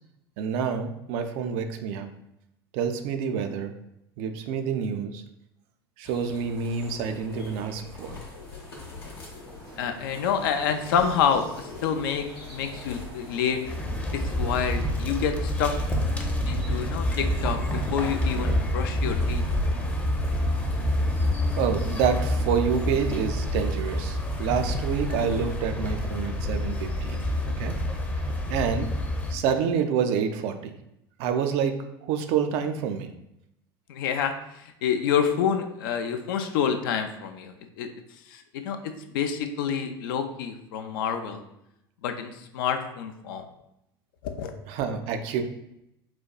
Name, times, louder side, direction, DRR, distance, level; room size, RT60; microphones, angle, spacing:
voice 1, 0.4-2.1 2.7-3.7 4.2-5.2 6.0-8.2 21.6-27.3 27.6-27.8 28.5-28.9 29.3-30.7 31.2-31.7 32.1-33.1 44.7-45.4, right 7 dB, 50° right, 7 dB, 0.4 m, -27 dB
sound 1, 6.0-25.6, left 3 dB, 85° left, 0.8 m, -44 dB
Printer, 8.8-15.0, right 1 dB, 80° right, 0.7 m, -47 dB
voice 2, 9.8-13.6 14.1-15.7 16.5-19.4 33.9-37.9 38.3-38.8 39.1-41.4 42.0-43.4 44.2-44.5, left 7 dB, 60° left, 7 dB, 0.4 m, -28 dB
sound 2, 13.6-29.3, left 1 dB, 10° left, 0.6 m, -27 dB
4.1 x 2.2 x 2.2 m, 0.81 s
figure-of-eight pair, 70°, 13 cm